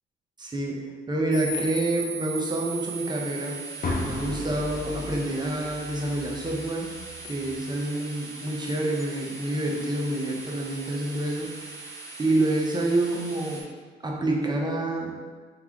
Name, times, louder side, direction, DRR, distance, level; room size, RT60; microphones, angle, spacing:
voice 1, 0.4-3.6 4.0-6.9 7.2-11.5 12.2-13.6 14.0-15.1, right 2 dB, 20° right, -1 dB, 0.9 m, -27 dB
sound 1, 1.3-13.6, right 3 dB, 15° left, 1.0 m, -39 dB
sound 2, 3.8-7.8, left 2 dB, 50° left, 0.8 m, -36 dB
3.4 x 3.4 x 3.7 m, 1.5 s
supercardioid pair, 75°, 20 cm